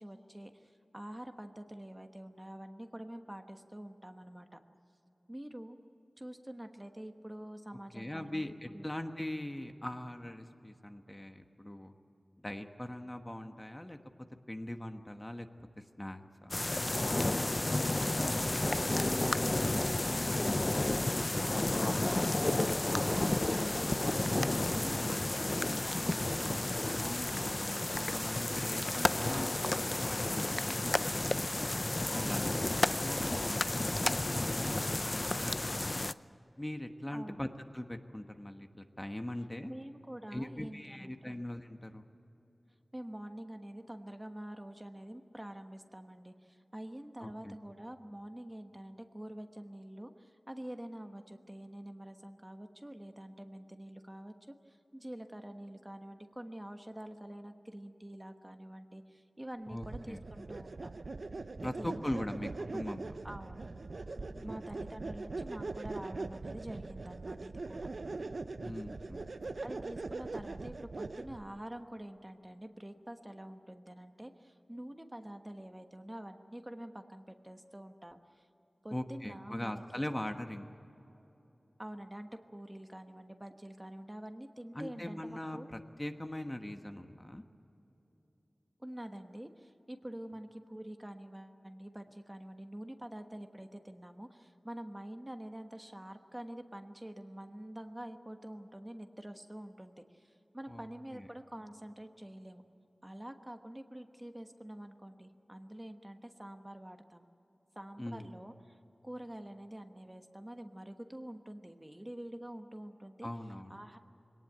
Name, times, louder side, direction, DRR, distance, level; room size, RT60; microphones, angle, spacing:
voice 1, 0.0-4.6 5.3-5.8 6.2-8.4 8.7-8.9 17.1-26.9 32.1-32.8 37.1-37.4 39.7-41.3 42.9-54.3 54.7-61.0 61.6-62.3 62.6-62.8 63.2-63.7 64.4-67.9 69.6-78.5 78.8-80.1 81.8-85.7 88.8-102.6 103.0-107.2 107.7-108.8 109.0-113.3 113.7-114.0, right 1 dB, 15° right, 6 dB, 1.2 m, -46 dB
voice 2, 7.9-11.9 12.4-14.0 14.5-16.7 27.0-31.5 32.0-32.4 32.9-33.7 34.4-35.9 36.6-37.5 37.7-39.7 40.3-42.1 47.2-47.5 59.7-60.2 61.6-63.2 64.3-64.6 68.6-69.3 78.9-80.7 84.7-87.4 100.7-100.9 101.1-101.3 108.0-108.3 113.2-114.0, left 1 dB, 20° left, 6 dB, 1.2 m, -41 dB
sound 1, 16.5-36.1, left 2 dB, 35° left, 0.5 m, -32 dB
sound 2, 59.8-71.5, right 3 dB, 75° right, 0.7 m, -41 dB
21.5 x 18.5 x 8.8 m, 3.0 s
wide cardioid pair, 60°, 0 cm